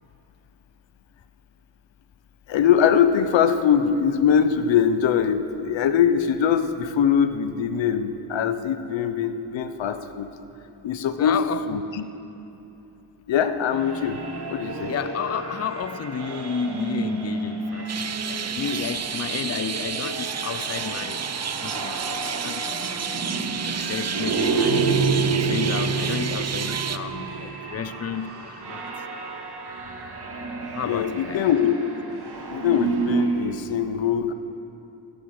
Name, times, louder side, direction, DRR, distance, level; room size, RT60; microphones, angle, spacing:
voice 1, 2.5-10.3 10.8-11.4 11.7-12.0 13.3-14.2 14.5-14.9 30.9-31.8 32.5-34.3, left 8 dB, 75° left, 1.0 m, -22 dB
voice 2, 11.2-11.8 14.9-21.3 21.6-23.0 23.6-25.0 25.3-28.8 30.7-31.4, left 7 dB, 35° left, 0.6 m, -32 dB
sound 1, 13.7-33.5, right 4 dB, 60° right, 2.3 m, -29 dB
sound 2, 17.9-27.0, right 7 dB, 35° right, 0.7 m, -30 dB
17.5 x 11.5 x 6.6 m
cardioid pair, 60°, 45 cm